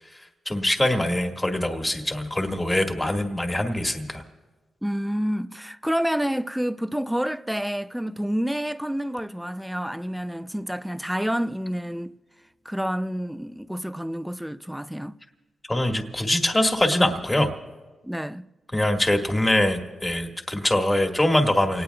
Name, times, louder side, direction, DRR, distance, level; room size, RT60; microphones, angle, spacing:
voice 1, 0.1-4.2 15.7-17.5 18.7-21.8, left 1 dB, 15° left, 1.7 m, -23 dB
voice 2, 4.8-12.2 12.7-15.2 18.0-18.5, equal, 5° right, 0.4 m, -28 dB
29.5 x 18.5 x 2.3 m
cardioid pair, 75°, 0 cm